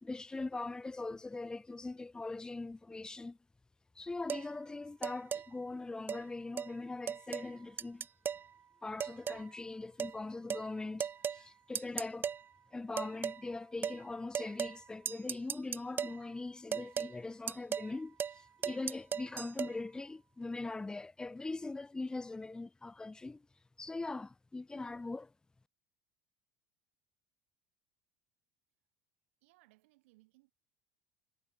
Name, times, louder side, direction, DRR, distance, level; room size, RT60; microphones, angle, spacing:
voice 1, 0.0-3.4 3.9-8.1 8.8-12.3 12.7-23.4 23.8-25.3, left 3 dB, 10° left, 1.2 m, -41 dB
sound 1, 4.3-4.5 5.0-5.5 6.1-6.2 6.6-6.7 7.1-7.5 7.8-8.5 9.0-9.5 10.0-10.2 10.5-10.7 11.0-11.4 11.8-12.4 13.0-13.4 13.8-14.0 14.3-14.8 15.1-16.2 16.7-17.1 17.5-17.9 18.2-18.4 18.6-19.7, right 7 dB, 30° right, 0.9 m, -37 dB
voice 2, 29.4-30.5, right 22 dB, 85° right, 6.8 m, -67 dB
supercardioid pair, 115°, 7 cm